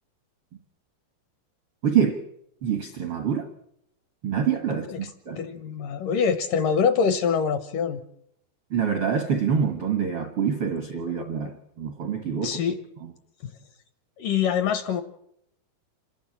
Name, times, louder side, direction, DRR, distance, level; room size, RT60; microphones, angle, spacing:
voice 1, 1.8-2.3 2.6-3.5 4.2-5.4 8.7-12.6 13.0-13.1, right 7 dB, 70° right, 1.3 m, -26 dB
voice 2, 5.4-8.0 12.4-12.8 13.4-13.6 14.2-15.0, left 6 dB, 70° left, 2.2 m, -25 dB
27.0 x 13.0 x 8.8 m
omnidirectional pair, 4.8 m